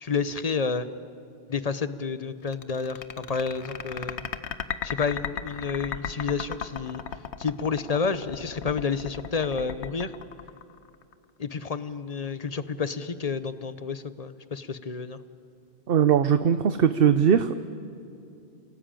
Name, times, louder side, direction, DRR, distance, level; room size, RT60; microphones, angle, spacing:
voice 1, 0.0-0.9 1.5-4.2 4.8-7.0 7.4-10.1 11.4-15.2, left 5 dB, 40° left, 13 dB, 0.9 m, -30 dB
sound 1, 2.5-11.1, left 7 dB, 90° left, 1.2 m, -35 dB
voice 2, 15.9-17.6, right 8 dB, 60° right, 11 dB, 0.9 m, -20 dB
29.5 x 18.0 x 8.9 m, 2.6 s
omnidirectional pair, 1.1 m